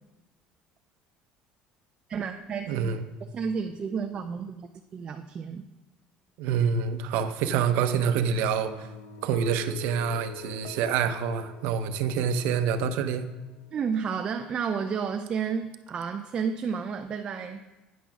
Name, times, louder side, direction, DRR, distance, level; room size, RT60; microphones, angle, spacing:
voice 1, 2.1-2.9 3.3-5.7 13.7-17.6, right 6 dB, 30° right, 6 dB, 0.4 m, -31 dB
voice 2, 2.7-3.1 6.4-8.9 9.2-13.2, right 7 dB, 80° right, 10 dB, 0.7 m, -27 dB
sound 1, 7.9-14.5, left 8 dB, 65° left, 0.5 m, -46 dB
9.3 x 6.2 x 5.9 m, 1.1 s
cardioid pair, 165°, 3 cm